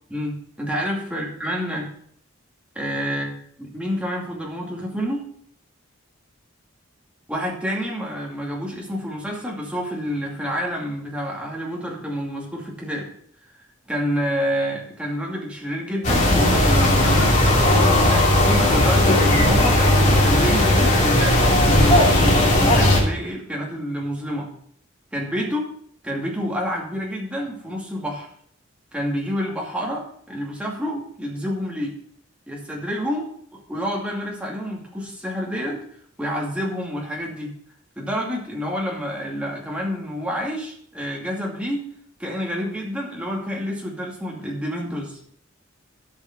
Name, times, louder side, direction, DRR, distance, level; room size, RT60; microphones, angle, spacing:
voice 1, 0.1-1.9 2.7-3.3 3.6-5.3 7.3-13.1 13.9-24.5 25.1-25.6 26.0-28.3 28.9-32.0 32.5-33.2 33.7-35.8 36.2-37.5 38.0-41.9 42.2-45.2, equal, 5° right, -3 dB, 2.4 m, -28 dB
sound 1, 16.0-23.0, left 1 dB, 35° left, 2.5 m, -17 dB
13.0 x 5.4 x 5.9 m, 0.63 s
head